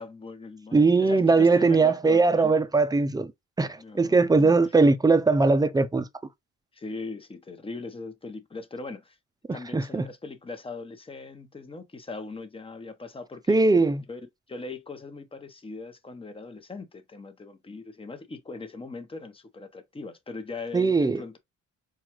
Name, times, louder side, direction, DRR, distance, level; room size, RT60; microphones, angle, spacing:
voice 1, 0.0-2.5 3.7-4.7 6.7-9.2 9.5-13.6 14.1-21.4, left 3 dB, 20° left, 0.8 m, -40 dB
voice 2, 0.7-3.3 3.6-6.1 9.7-10.1 13.5-14.0 20.7-21.2, right 3 dB, 15° right, 0.4 m, -20 dB
4.3 x 2.4 x 2.9 m
cardioid pair, 90°, 30 cm